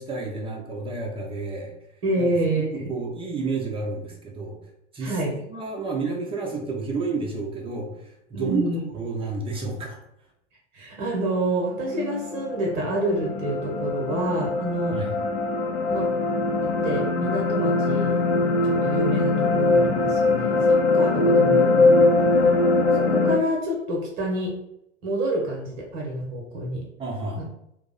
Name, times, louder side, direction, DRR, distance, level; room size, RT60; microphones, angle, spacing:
voice 1, 0.0-1.7 2.2-4.6 4.9-5.2 5.5-8.6 8.9-10.0 14.9-15.1 27.0-27.4, right 3 dB, 15° right, 0 dB, 0.6 m, -30 dB
voice 2, 2.0-2.9 5.0-5.4 8.3-8.8 10.7-14.9 15.9-16.1 16.6-18.2 18.6-22.6 22.9-24.5 25.0-26.9, right 1 dB, 40° right, -1 dB, 0.9 m, -28 dB
sound 1, 11.7-23.4, left 3 dB, 60° left, 0.6 m, -22 dB
2.6 x 2.0 x 3.9 m, 0.81 s
figure-of-eight pair, 85°, 36 cm